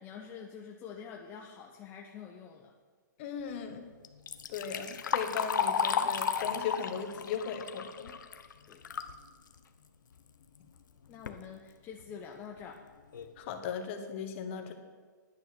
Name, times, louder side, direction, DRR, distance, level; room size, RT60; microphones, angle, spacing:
voice 1, 0.0-2.7 8.7-8.8 11.1-12.8, left 7 dB, 20° left, 0 dB, 0.9 m, -46 dB
voice 2, 3.2-3.9 4.5-8.2 13.4-14.7, left 6 dB, 40° left, 6 dB, 1.5 m, -37 dB
Liquid, 4.0-9.2 9.6-9.7 10.5-10.6 11.1-11.4 12.0-12.1 12.6-12.7 13.1-13.4, left 6 dB, 75° left, 1.0 m, -33 dB
10.5 x 9.6 x 6.2 m, 1.5 s
hypercardioid pair, 150°, 10 cm